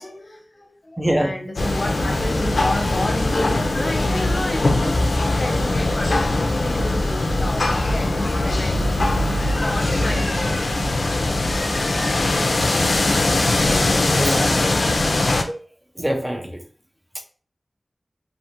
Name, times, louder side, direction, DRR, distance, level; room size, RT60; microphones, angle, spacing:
voice 1, 0.0-9.0 9.3-11.1 11.4-12.5, left 1 dB, 45° left, 1 dB, 0.6 m, -31 dB
voice 2, 1.0-1.3 14.1-14.6 15.5-15.6 16.0-16.6, equal, 15° right, 4 dB, 0.4 m, -23 dB
sound 1, 1.6-15.4, left 2 dB, 70° left, 0.3 m, -21 dB
2.4 x 2.4 x 2.9 m, 0.42 s
wide cardioid pair, 65°, 0 cm